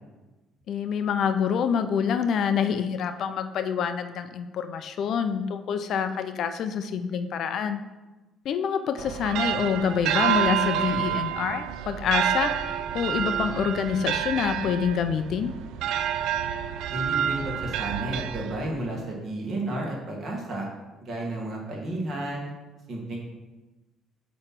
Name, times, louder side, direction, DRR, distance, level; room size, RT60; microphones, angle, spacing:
voice 1, 0.7-7.8 8.4-15.5, left 7 dB, 55° left, 9 dB, 0.4 m, -27 dB
sound 1, 9.0-18.9, right 10 dB, 80° right, 0.3 m, -28 dB
voice 2, 16.9-20.7 21.0-22.5 22.9-23.2, right 1 dB, 40° right, -1 dB, 1.7 m, -32 dB
7.5 x 3.0 x 5.9 m, 1.1 s
cardioid pair, 150°, 0 cm